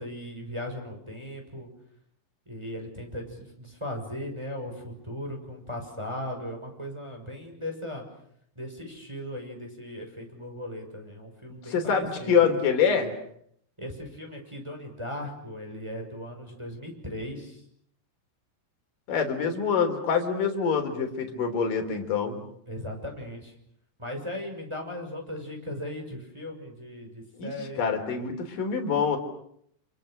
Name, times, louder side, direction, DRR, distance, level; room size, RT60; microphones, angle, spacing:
voice 1, 0.0-1.7 2.5-8.0 8.6-12.4 13.8-17.6 22.7-23.5 24.0-27.8, left 1 dB, 5° right, 1 dB, 6.0 m, -37 dB
voice 2, 11.7-13.1 19.1-22.4 27.4-27.5 27.8-29.2, left 6 dB, 55° left, 5 dB, 5.0 m, -25 dB
30.0 x 29.0 x 6.6 m, 0.69 s
omnidirectional pair, 4.7 m